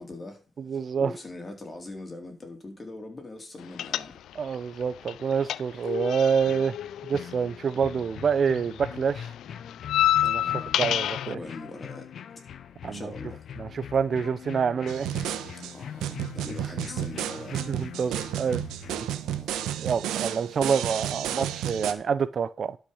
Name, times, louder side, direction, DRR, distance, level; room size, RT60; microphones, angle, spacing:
voice 1, 0.0-0.4 0.7-4.1 10.4-10.8 11.3-12.1 12.9-13.4 15.7-17.6 19.1-19.5 21.3-21.4, left 2 dB, 25° left, 4.0 m, -42 dB
voice 2, 0.6-1.1 4.4-6.7 7.1-9.3 10.2-10.4 10.8-11.4 12.8-13.1 13.6-15.1 17.7-18.6 19.8-22.8, right 6 dB, 50° right, 0.7 m, -27 dB
sound 1, 3.8-4.6 4.8-8.2 8.5-11.3, left 12 dB, 75° left, 0.4 m, -28 dB
sound 2, 6.4-19.1, left 8 dB, 60° left, 0.9 m, -42 dB
sound 3, 14.9-21.9, right 11 dB, 90° right, 1.2 m, -32 dB
12.0 x 5.9 x 5.6 m
cardioid pair, 90°, 0 cm